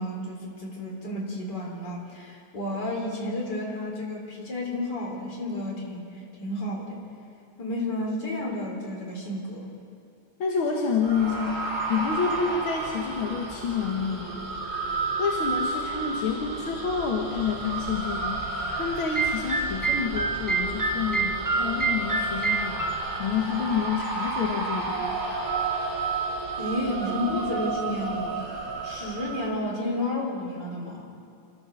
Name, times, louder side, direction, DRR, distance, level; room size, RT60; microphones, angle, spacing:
voice 1, 0.0-7.0 7.6-9.7 26.6-28.5 28.8-31.1, left 1 dB, 55° left, -1 dB, 4.4 m, -31 dB
voice 2, 10.4-11.6 11.9-14.4 15.2-22.9 23.2-25.2, left 6 dB, 80° left, 0 dB, 2.3 m, -28 dB
sound 1, 11.0-29.5, right 3 dB, 55° right, 7.1 m, -32 dB
sound 2, 19.1-22.9, right 3 dB, 10° right, 1.1 m, -27 dB
27.5 x 14.0 x 7.0 m, 2.5 s
omnidirectional pair, 2.2 m